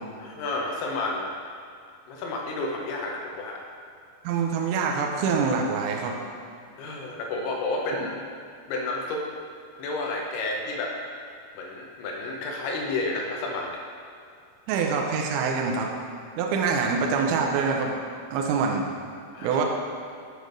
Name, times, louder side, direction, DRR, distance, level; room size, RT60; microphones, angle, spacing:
voice 1, 0.2-1.3 2.1-3.6 6.8-8.1 8.7-9.2 9.8-11.0 11.6-13.8 19.4-19.6, left 2 dB, 80° left, 0 dB, 2.4 m, -31 dB
voice 2, 4.2-6.2 14.7-15.9 16.4-17.9 18.3-18.8 19.4-19.6, right 5 dB, 90° right, 0 dB, 2.1 m, -25 dB
8.2 x 3.2 x 5.1 m, 2.4 s
omnidirectional pair, 5.1 m